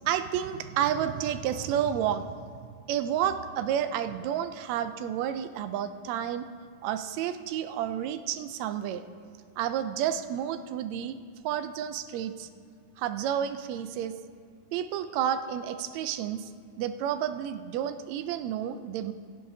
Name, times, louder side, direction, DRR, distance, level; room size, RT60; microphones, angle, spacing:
voice 1, 0.0-2.4 2.9-6.5 6.8-9.0 9.6-11.2 11.4-12.5 13.0-14.2 14.7-16.5 16.8-19.1, right 10 dB, 85° right, 10 dB, 1.6 m, -30 dB
20.0 x 10.0 x 2.7 m, 2.2 s
omnidirectional pair, 3.6 m